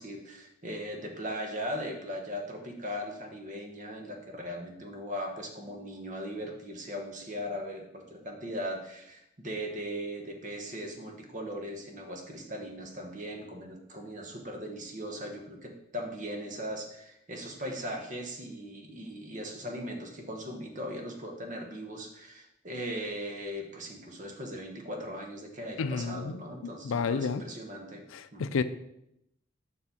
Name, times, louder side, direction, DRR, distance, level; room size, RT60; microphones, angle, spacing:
voice 1, 0.0-28.0 28.3-28.5, equal, 40° right, 1.2 m, -39 dB
voice 2, 25.8-26.4 26.8-27.4 28.1-28.6, left 5 dB, 85° left, 0.4 m, -30 dB
7.0 x 5.4 x 4.2 m
head